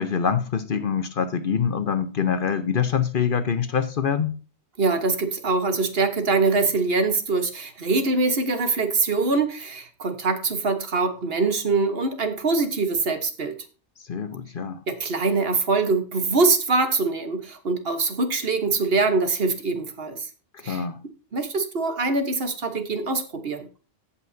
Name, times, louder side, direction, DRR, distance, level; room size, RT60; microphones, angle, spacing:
voice 1, 0.0-4.4 14.1-14.8 20.5-21.0, left 7 dB, 55° left, 0.9 m, -25 dB
voice 2, 4.8-13.6 14.9-20.3 20.6-20.8 21.3-23.7, right 3 dB, 60° right, 1.4 m, -23 dB
17.0 x 5.7 x 2.7 m
omnidirectional pair, 1.2 m